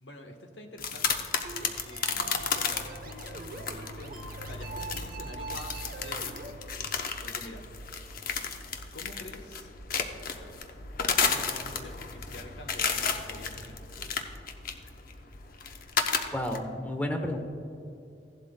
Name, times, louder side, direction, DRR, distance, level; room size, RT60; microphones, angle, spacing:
voice 1, 0.0-1.2 1.6-6.9 7.2-7.6 8.9-9.7 10.3-10.5 11.2-14.2, left 1 dB, 80° left, 4 dB, 1.2 m, -47 dB
sound 1, 0.8-16.6, left 5 dB, 55° left, 0.7 m, -33 dB
sound 2, 1.4-6.5, right 4 dB, 55° right, 0.7 m, -43 dB
voice 2, 16.3-17.4, left 1 dB, 10° left, 4 dB, 0.8 m, -31 dB
16.0 x 11.5 x 2.2 m, 2.6 s
head